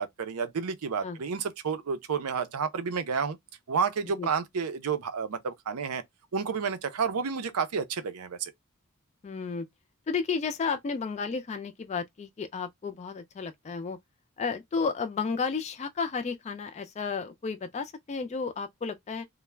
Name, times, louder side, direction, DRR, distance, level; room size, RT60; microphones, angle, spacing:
voice 1, 0.0-3.4 3.7-6.0 6.3-8.5, right 6 dB, 80° right, 0.5 m, -30 dB
voice 2, 9.2-9.7 10.1-14.0 14.4-19.3, left 5 dB, 30° left, 0.3 m, -32 dB
2.3 x 2.1 x 3.1 m
head